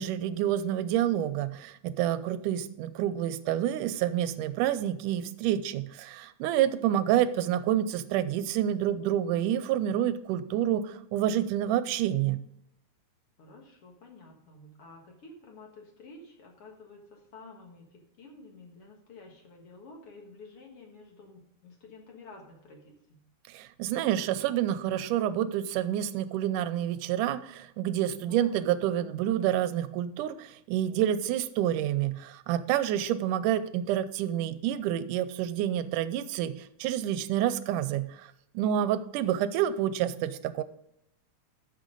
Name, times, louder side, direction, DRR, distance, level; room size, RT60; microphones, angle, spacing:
voice 1, 0.0-12.5 23.5-40.6, right 11 dB, 90° right, 14 dB, 2.1 m, -28 dB
voice 2, 13.4-23.2 28.0-28.6, left 3 dB, 50° left, 1 dB, 2.2 m, -51 dB
12.5 x 6.4 x 3.8 m, 0.77 s
omnidirectional pair, 3.6 m